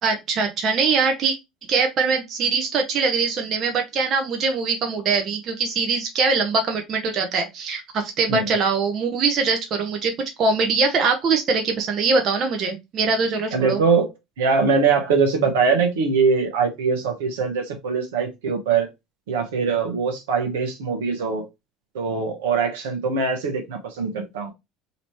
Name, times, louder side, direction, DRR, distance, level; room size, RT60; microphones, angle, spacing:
voice 1, 0.0-1.3 1.7-10.1 10.4-13.8, right 4 dB, 45° right, 4 dB, 0.9 m, -22 dB
voice 2, 13.5-14.1 14.4-18.9 19.3-21.4 21.9-24.5, right 5 dB, 75° right, 4 dB, 1.1 m, -22 dB
4.0 x 3.0 x 3.0 m, 0.21 s
hypercardioid pair, 65°, 0 cm